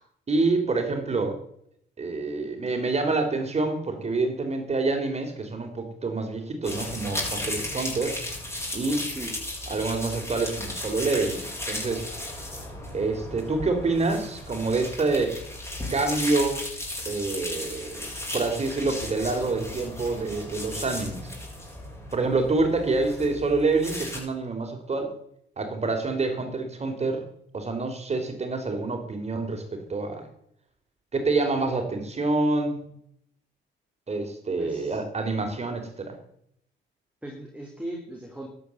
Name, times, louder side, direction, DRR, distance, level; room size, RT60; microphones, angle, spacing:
voice 1, 0.3-1.4 2.0-8.2 8.7-9.1 9.7-12.0 12.9-15.4 15.9-16.6 17.1-21.3 22.1-25.1 25.6-27.2 27.5-30.3 31.1-32.8 34.1-36.2, right 3 dB, 35° right, 6 dB, 3.5 m, -27 dB
sound 1, 6.6-24.2, left 1 dB, 15° left, 7.3 m, -35 dB
voice 2, 34.6-35.0 37.2-38.5, right 1 dB, 5° right, 0 dB, 3.0 m, -38 dB
12.5 x 9.6 x 7.2 m, 0.71 s
cardioid pair, 90°, 20 cm